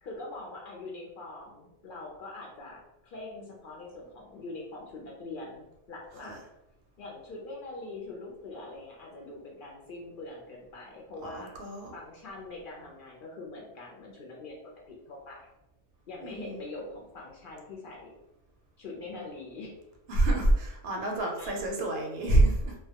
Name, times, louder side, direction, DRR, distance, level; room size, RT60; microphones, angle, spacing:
voice 1, 0.0-6.3 7.0-11.5 11.9-14.6 14.9-15.5 16.1-18.1 18.8-19.7 21.0-21.1 21.4-21.6, left 2 dB, 60° left, -2 dB, 0.6 m, -43 dB
voice 2, 11.2-11.9 16.2-16.6 20.1-22.7, right 2 dB, 70° right, 1 dB, 0.7 m, -27 dB
2.1 x 2.1 x 2.7 m, 0.91 s
omnidirectional pair, 1.1 m